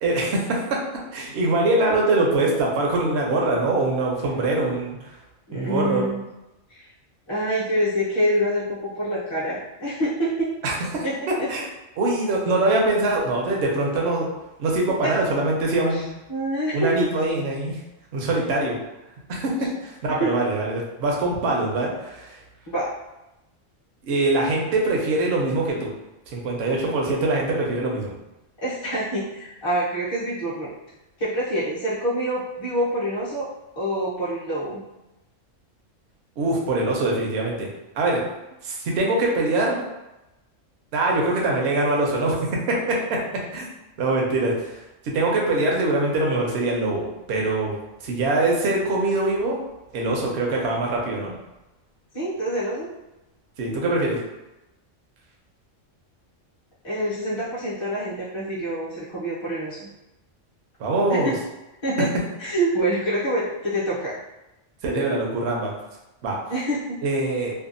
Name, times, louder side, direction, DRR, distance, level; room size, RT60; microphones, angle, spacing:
voice 1, 0.0-0.8 1.1-5.0 5.5-6.0 10.6-11.7 12.0-14.3 14.6-16.0 16.7-17.8 18.1-18.7 19.3-22.4 24.1-25.9 26.3-28.1 36.4-37.7 38.0-38.2 38.6-39.8 40.9-43.7 44.0-44.7 45.0-49.6 49.9-51.3 53.6-54.2 60.8-61.3 64.8-65.7 66.2-66.4 67.0-67.5, right 2 dB, 65° right, -1 dB, 0.8 m, -23 dB
voice 2, 5.5-6.2 6.7-6.9 7.3-10.5 11.0-11.5 15.9-16.0 16.3-16.9 20.2-20.3 22.7-22.9 28.6-30.7 31.2-33.5 33.8-34.8 52.1-52.9 56.8-59.9 61.1-61.2 61.8-62.1 62.4-64.1 66.5-67.0, right 1 dB, 30° left, -9 dB, 0.6 m, -26 dB
2.6 x 2.2 x 2.5 m, 0.97 s
omnidirectional pair, 1.3 m